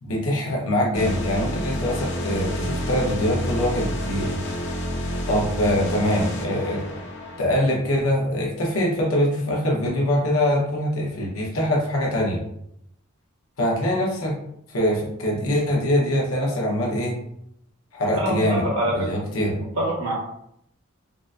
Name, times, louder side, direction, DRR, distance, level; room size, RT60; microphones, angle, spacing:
voice 1, 0.0-4.4 5.3-6.9 7.4-12.4 13.6-14.4 14.7-17.2 17.9-19.6, left 1 dB, 85° left, -1 dB, 0.8 m, -23 dB
sound 1, 0.9-7.4, equal, 60° left, 0.5 m, -29 dB
voice 2, 18.1-19.3 19.7-20.1, right 1 dB, 80° right, -3 dB, 1.2 m, -25 dB
3.8 x 2.1 x 2.4 m, 0.75 s
head